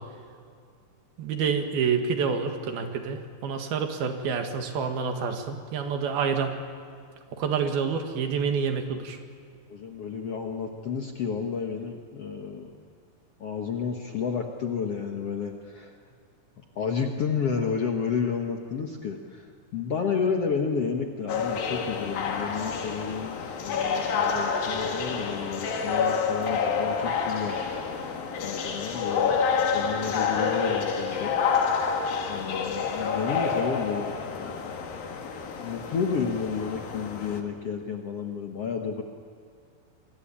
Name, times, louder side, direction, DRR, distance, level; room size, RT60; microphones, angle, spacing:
voice 1, 1.2-6.6 7.3-9.2, right 6 dB, 85° right, 5 dB, 3.8 m, -28 dB
voice 2, 9.7-12.7 13.4-16.0 16.8-28.1 28.4-31.3 32.3-34.8 35.6-39.0, left 6 dB, 55° left, 3 dB, 1.9 m, -31 dB
sound 1, 21.3-37.4, left 5 dB, 75° left, 3.8 m, -28 dB
28.5 x 20.5 x 8.8 m, 2.2 s
omnidirectional pair, 4.2 m